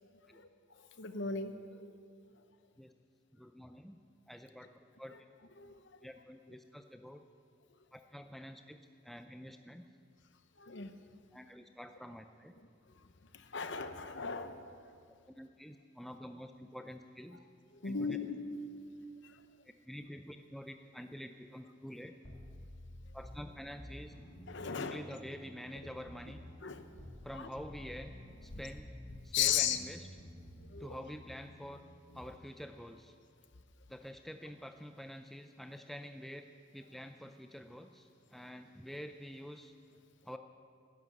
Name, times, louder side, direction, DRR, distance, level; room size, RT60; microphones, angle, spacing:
voice 1, 1.0-1.9 5.6-5.8 10.6-10.9 13.3-14.5 17.8-18.9 19.2-19.4 24.5-25.0 26.6-26.8 27.3-27.5 29.3-29.8 30.7-30.9, left 7 dB, 55° left, 9 dB, 0.9 m, -36 dB
voice 2, 3.3-4.0 4.3-5.1 6.0-7.2 7.9-9.8 11.3-12.5 15.3-17.4 17.8-18.2 19.9-22.2 23.1-24.1 24.8-26.4 27.2-28.1 28.4-28.9 29.2-30.1 30.8-31.9 32.1-33.1 33.9-36.5 36.7-39.7 40.2-40.4, equal, ahead, 7 dB, 0.4 m, -47 dB
sound 1, 22.2-27.3 27.6-32.3, left 1 dB, 35° left, 2.7 m, -52 dB
13.0 x 11.0 x 8.1 m, 2.3 s
head